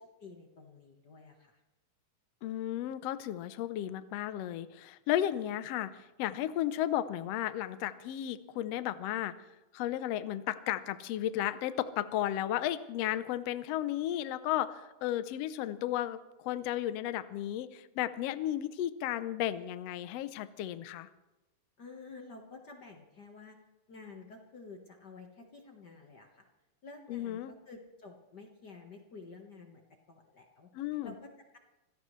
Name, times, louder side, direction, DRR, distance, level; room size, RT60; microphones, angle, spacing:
voice 1, 0.0-1.6 21.8-23.6 23.9-26.5 26.8-30.7 31.0-31.6, left 3 dB, 45° left, 2 dB, 1.4 m, -51 dB
voice 2, 2.4-9.3 9.7-16.2 16.4-21.1 27.1-27.5 30.7-31.1, left 12 dB, 75° left, 12 dB, 1.5 m, -34 dB
26.0 x 16.5 x 3.2 m, 1.0 s
omnidirectional pair, 3.6 m